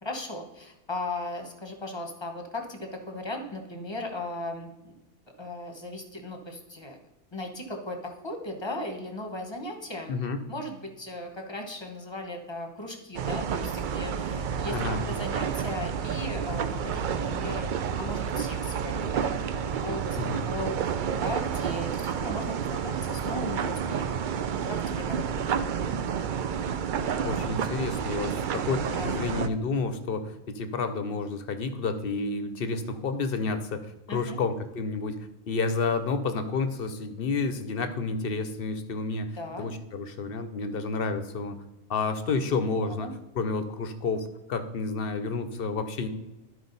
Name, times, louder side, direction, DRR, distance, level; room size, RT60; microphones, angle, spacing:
voice 1, 0.0-4.9 5.4-7.0 7.3-10.1 10.5-14.8 15.1-17.7 18.0-20.2 20.4-20.9 21.2-24.1 24.7-25.6 29.0-29.2 34.1-34.4 39.3-39.7 42.9-43.1, left 1 dB, 20° left, 3 dB, 0.9 m, -37 dB
voice 2, 10.1-10.4 14.7-15.0 20.2-20.5 27.2-33.8 34.1-35.2 35.5-39.3 39.6-41.6 41.9-43.1 43.3-46.1, left 4 dB, 55° left, 9 dB, 0.7 m, -30 dB
sound 1, 13.1-29.5, right 7 dB, 85° right, 0.4 m, -30 dB
12.0 x 4.8 x 4.0 m, 0.98 s
omnidirectional pair, 1.4 m